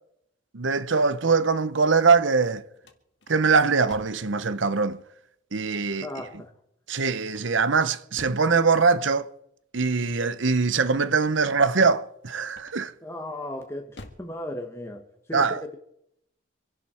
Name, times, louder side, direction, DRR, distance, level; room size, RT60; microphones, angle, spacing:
voice 1, 0.5-2.6 3.3-5.0 5.5-6.1 6.9-9.3 9.7-12.9 15.3-15.6, right 4 dB, 75° right, 0.9 m, -22 dB
sound 1, 2.0-4.3 7.3-8.6 12.5-13.0 13.5-14.3, left 1 dB, 65° left, 1.9 m, -48 dB
voice 2, 5.8-6.5 13.0-15.0 15.3-15.8, left 1 dB, 15° left, 1.3 m, -36 dB
26.0 x 11.0 x 4.4 m
head